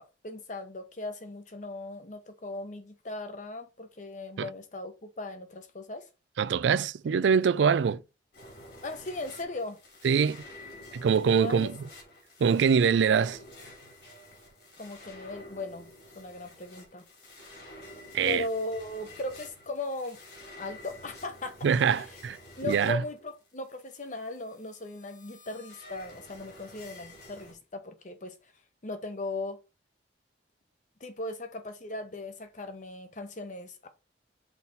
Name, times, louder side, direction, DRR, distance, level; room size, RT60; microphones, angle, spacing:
voice 1, 0.0-6.0 8.8-9.8 11.4-11.7 14.8-15.9 16.2-17.0 18.3-20.2 20.6-21.6 22.0-22.1 22.6-28.4 28.8-29.6 31.0-33.9, left 2 dB, 45° left, 1.0 m, -38 dB
voice 2, 6.4-8.0 10.0-10.4 10.9-11.7 12.4-13.4 18.1-18.4 21.6-22.4 22.6-23.0, right 6 dB, 85° right, 0.4 m, -24 dB
sound 1, 8.3-27.5, left 1 dB, 65° left, 3.1 m, -50 dB
5.8 x 4.0 x 4.0 m
head